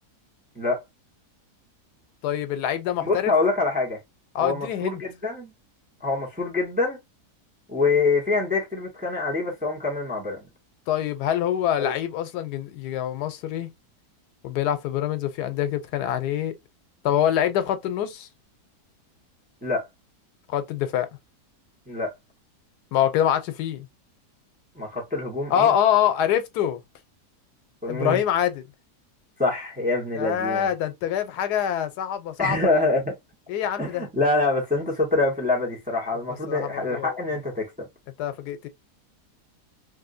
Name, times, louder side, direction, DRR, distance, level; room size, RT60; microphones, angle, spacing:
voice 1, 2.2-3.3 4.3-5.0 10.9-13.7 14.4-16.5 17.0-18.3 20.5-21.1 22.9-23.9 25.5-26.8 27.9-28.6 30.1-32.8 33.5-34.0 36.5-37.2 38.2-38.7, left 10 dB, 85° left, 1.2 m, -25 dB
voice 2, 3.0-4.0 4.4-5.5 6.0-7.0 7.7-10.4 11.8-11.9 19.6-19.9 21.9-22.1 24.7-25.7 27.8-28.2 29.4-30.7 32.4-33.1 33.8-37.7, left 3 dB, 5° right, 1.0 m, -25 dB
3.2 x 2.7 x 2.5 m
omnidirectional pair, 1.7 m